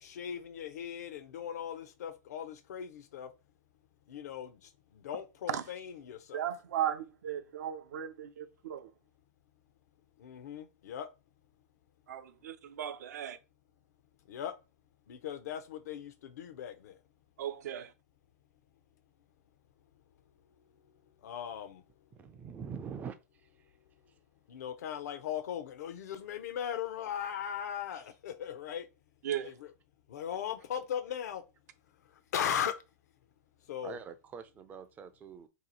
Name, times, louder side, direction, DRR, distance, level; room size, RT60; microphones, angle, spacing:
voice 1, 0.0-3.3 4.1-4.6 4.9-6.5 10.2-11.1 14.3-14.5 15.1-17.0 21.2-21.8 24.5-28.9 29.4-29.5 30.1-31.4 32.3-32.7 33.7-34.0, left 9 dB, 70° left, 0.6 m, -38 dB
voice 2, 6.3-8.9 12.1-13.4 17.4-17.9 29.2-29.5, right 10 dB, 70° right, 0.5 m, -36 dB
voice 3, 22.1-23.2 27.9-28.0 33.8-35.5, right 6 dB, 15° right, 0.3 m, -44 dB
2.8 x 2.4 x 4.0 m
hypercardioid pair, 135°, 9 cm